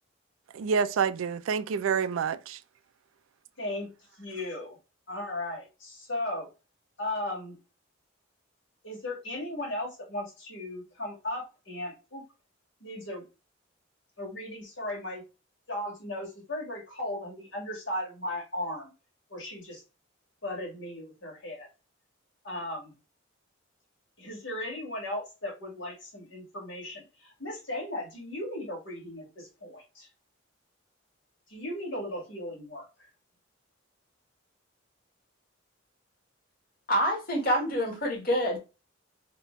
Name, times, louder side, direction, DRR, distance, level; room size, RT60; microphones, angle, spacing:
voice 1, 0.5-2.6, right 6 dB, 80° right, 0.3 m, -28 dB
voice 2, 3.6-4.8 5.1-6.5 7.0-7.6 8.8-12.2 12.8-13.2 14.2-15.3 15.7-18.9 19.3-19.8 20.4-21.7 22.4-22.9 24.2-30.1 31.5-33.1, left 1 dB, 65° left, 1.8 m, -36 dB
voice 3, 36.9-38.6, equal, 45° left, 1.5 m, -26 dB
3.3 x 2.8 x 3.0 m
head